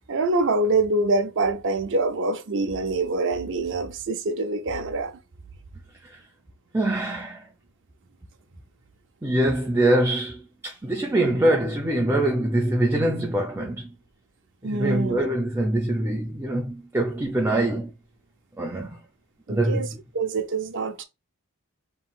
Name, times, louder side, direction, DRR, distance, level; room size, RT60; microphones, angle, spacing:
voice 1, 0.1-5.2 14.6-15.3 19.5-19.9 20.1-21.0, right 2 dB, 60° right, 0.6 m, -25 dB
voice 2, 6.7-7.5 9.2-13.9 14.6-17.9 18.6-19.0 19.5-19.9, right 1 dB, 10° right, 0.6 m, -24 dB
5.5 x 3.1 x 2.4 m
head